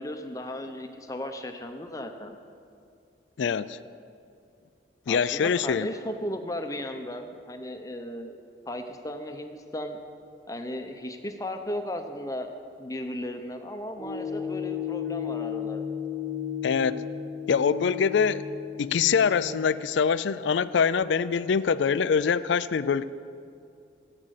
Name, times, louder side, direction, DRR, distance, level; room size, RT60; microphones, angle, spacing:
voice 1, 0.0-2.4 5.1-8.4 8.7-10.0 10.5-12.5 12.8-15.8, left 1 dB, 20° left, 6 dB, 0.8 m, -35 dB
voice 2, 3.4-3.8 5.1-5.9 16.6-17.0 17.5-18.4 18.8-23.0, left 6 dB, 75° left, 15 dB, 0.4 m, -24 dB
sound 1, 14.0-19.5, left 8 dB, 5° right, 2.2 m, -34 dB
17.0 x 8.8 x 6.5 m, 2.5 s
head